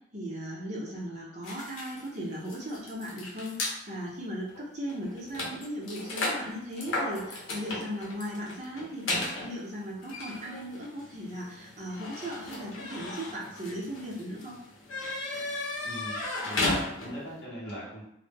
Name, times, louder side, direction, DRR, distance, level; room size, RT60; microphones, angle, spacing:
voice 1, 0.1-9.0 9.4-14.6, equal, 35° right, -5 dB, 0.6 m, -37 dB
sound 1, 1.4-3.8 4.5-4.6 4.9-17.3, left 2 dB, 85° left, 0.6 m, -35 dB
voice 2, 15.8-18.0, right 1 dB, 55° left, -8 dB, 0.8 m, -40 dB
2.1 x 2.0 x 3.3 m, 0.76 s
head